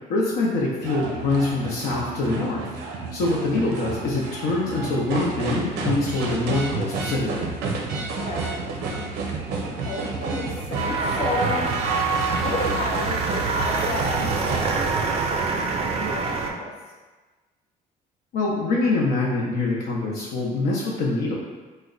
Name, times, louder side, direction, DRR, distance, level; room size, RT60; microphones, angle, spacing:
voice 1, 0.1-2.7 3.1-7.5 18.3-21.4, left 2 dB, 65° left, -4 dB, 0.6 m, -24 dB
sound 1, 0.8-14.7, right 3 dB, 90° right, 0.5 m, -31 dB
voice 2, 8.2-8.6 9.7-11.7 12.3-14.9 15.9-16.7, left 1 dB, 35° left, -3 dB, 0.8 m, -31 dB
sound 2, 10.7-16.5, right 4 dB, 35° right, 0.4 m, -25 dB
3.1 x 2.1 x 3.7 m, 1.3 s
cardioid pair, 110°, 17 cm